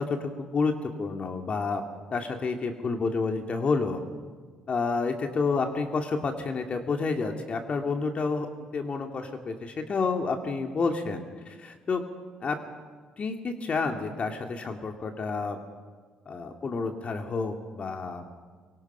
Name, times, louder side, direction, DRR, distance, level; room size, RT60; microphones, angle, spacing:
voice 1, 0.0-1.8 2.1-4.0 4.7-8.5 8.7-12.0 12.4-12.6 13.2-15.6 16.3-18.2, left 4 dB, 45° left, 4 dB, 2.3 m, -29 dB
24.5 x 23.5 x 5.7 m, 1.5 s
hypercardioid pair, 50°, 3 cm